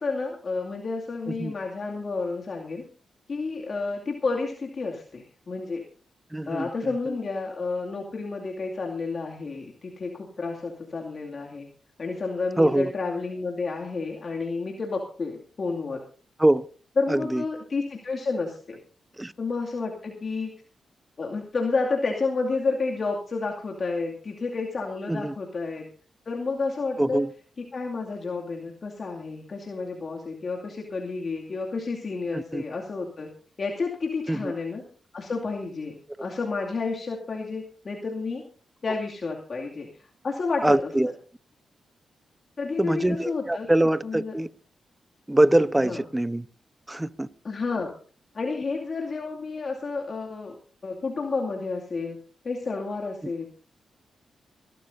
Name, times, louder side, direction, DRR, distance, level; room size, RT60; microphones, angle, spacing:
voice 1, 0.0-2.8 3.3-5.8 6.5-11.7 12.0-16.0 17.0-18.8 19.4-20.5 21.2-25.9 26.3-27.2 27.7-33.3 33.6-34.8 35.1-38.4 38.8-39.9 40.2-40.9 42.6-43.7 44.0-44.3 45.8-46.0 47.4-47.9 48.3-50.5 50.8-52.2 52.4-53.5, left 4 dB, 55° left, 2.4 m, -30 dB
voice 2, 6.3-7.2 12.6-12.9 16.4-16.6 17.1-17.4 19.2-19.3 25.1-25.3 27.0-27.3 32.3-32.6 34.3-34.5 40.6-41.1 42.8-44.5 45.3-46.5 46.9-47.3, right 1 dB, 15° right, 0.9 m, -23 dB
25.5 x 12.5 x 2.7 m
supercardioid pair, 50°, 0 cm